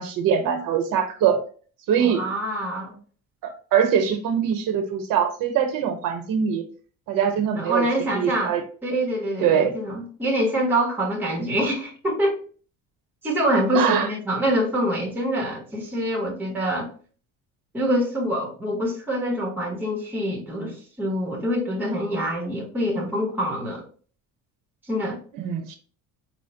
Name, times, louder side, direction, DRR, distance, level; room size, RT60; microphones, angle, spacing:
voice 1, 0.0-1.4 1.9-2.2 3.4-6.6 7.1-8.6 9.4-9.7 13.7-14.1 25.3-25.8, right 8 dB, 70° right, 6 dB, 0.8 m, -23 dB
voice 2, 2.0-3.0 7.5-8.6 8.8-12.4 13.2-16.9 17.7-23.8 24.9-25.2, equal, 5° right, -1 dB, 0.8 m, -25 dB
4.4 x 2.0 x 3.8 m, 0.42 s
cardioid pair, 165°, 35 cm